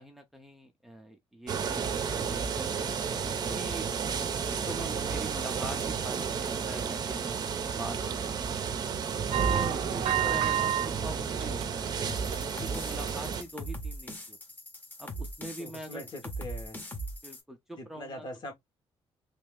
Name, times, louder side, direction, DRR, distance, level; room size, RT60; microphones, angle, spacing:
voice 1, 0.0-1.9 2.1-2.9 3.5-7.4 7.8-8.4 9.4-12.2 12.6-14.4 15.0-16.0 17.2-18.2, right 1 dB, 5° right, 0.7 m, -43 dB
sound 1, 1.5-13.4, right 6 dB, 45° right, 0.7 m, -32 dB
sound 2, 9.3-10.9 11.3-11.9 12.3-12.5 13.0-13.1, right 12 dB, 85° right, 0.4 m, -29 dB
voice 2, 9.7-10.1 15.6-16.8 17.8-18.5, left 1 dB, 50° left, 1.8 m, -42 dB
sound 3, 12.1-17.4, right 1 dB, 20° left, 1.2 m, -40 dB
3.2 x 2.9 x 3.4 m
cardioid pair, 135°, 10 cm